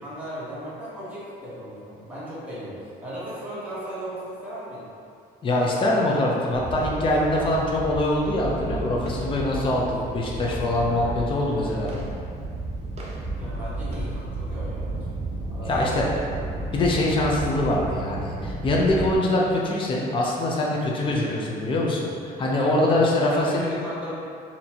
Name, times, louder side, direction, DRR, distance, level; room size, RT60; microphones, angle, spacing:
voice 1, 0.0-4.9 10.8-11.2 11.7-12.0 13.3-15.2 15.5-16.1 20.6-20.8 21.2-21.4 22.5-24.1, equal, 10° right, -11 dB, 1.4 m, -37 dB
voice 2, 5.4-11.9 15.6-16.1 16.7-23.6, left 1 dB, 30° left, -3 dB, 0.6 m, -23 dB
sound 1, 6.5-19.1, right 2 dB, 40° right, 0.6 m, -33 dB
4.1 x 2.9 x 2.8 m, 2.5 s
cardioid pair, 110°, 17 cm